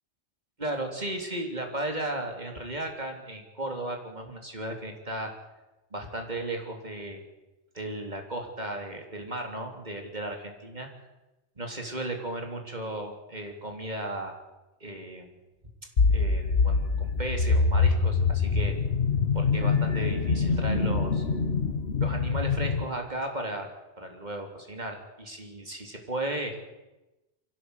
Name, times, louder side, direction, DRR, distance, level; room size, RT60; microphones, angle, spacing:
voice 1, 0.6-5.3 5.9-7.2 7.7-10.9 11.6-14.3 14.8-15.4 16.1-18.8 19.3-21.2 22.0-23.7 24.0-26.6, right 1 dB, 40° right, 3 dB, 3.6 m, -35 dB
sound 1, 16.0-22.8, left 4 dB, 65° left, 1.7 m, -25 dB
24.5 x 16.0 x 8.2 m, 1.0 s
omnidirectional pair, 1.1 m